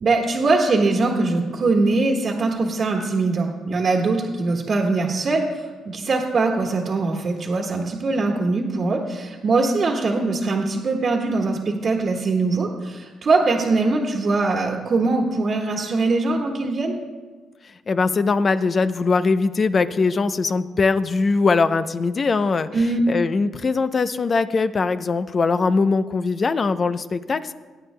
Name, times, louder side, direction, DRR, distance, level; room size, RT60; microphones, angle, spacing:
voice 1, 0.0-16.9 22.7-23.0, right 3 dB, 50° right, 0 dB, 1.5 m, -22 dB
voice 2, 17.9-22.7 23.1-27.5, left 4 dB, 40° left, 12 dB, 0.5 m, -21 dB
21.5 x 9.2 x 2.2 m, 1.3 s
cardioid pair, 90°, 0 cm